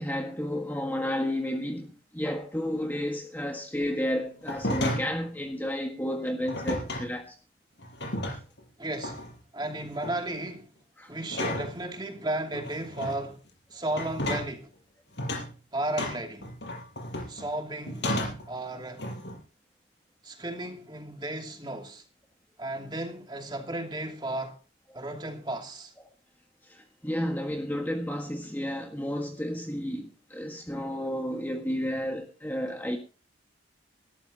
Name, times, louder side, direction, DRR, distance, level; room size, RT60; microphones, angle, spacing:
voice 1, 0.0-7.4 11.0-11.1 26.7-33.0, equal, 10° left, 1.6 m, -32 dB
sound 1, 4.4-5.2 6.5-7.1 7.8-8.6 9.0-9.3 9.8-10.2 11.3-11.8 12.5-13.2 13.9-14.5 15.2-15.5 16.0-17.5 17.9-18.5 19.0-19.4, left 1 dB, 65° left, 5.5 m, -32 dB
voice 2, 8.8-10.7 11.1-13.4 13.7-14.7 15.7-16.5 17.3-18.1 18.5-19.0 20.2-22.0 22.6-24.6 24.9-25.9, right 1 dB, 25° right, 2.7 m, -34 dB
19.5 x 13.5 x 2.9 m
head